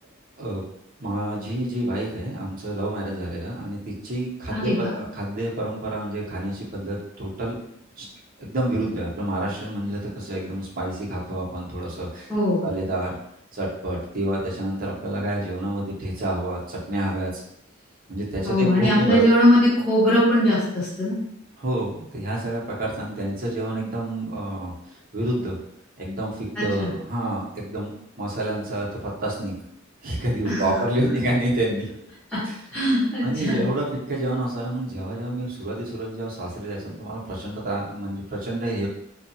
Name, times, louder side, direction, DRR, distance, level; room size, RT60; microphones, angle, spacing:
voice 1, 1.0-7.6 7.9-8.1 8.4-12.3 12.6-13.1 13.5-17.4 18.1-19.2 21.6-25.6 26.0-27.9 28.2-29.5 30.0-31.9 32.4-32.6 33.2-38.9, right 1 dB, 45° right, -4 dB, 0.8 m, -28 dB
voice 2, 4.5-4.9 12.3-12.7 18.4-21.2 26.6-26.9 30.4-30.6 31.0-31.1 32.3-32.4 32.7-33.7, equal, 5° left, -13 dB, 0.9 m, -20 dB
2.7 x 2.3 x 2.6 m, 0.74 s
head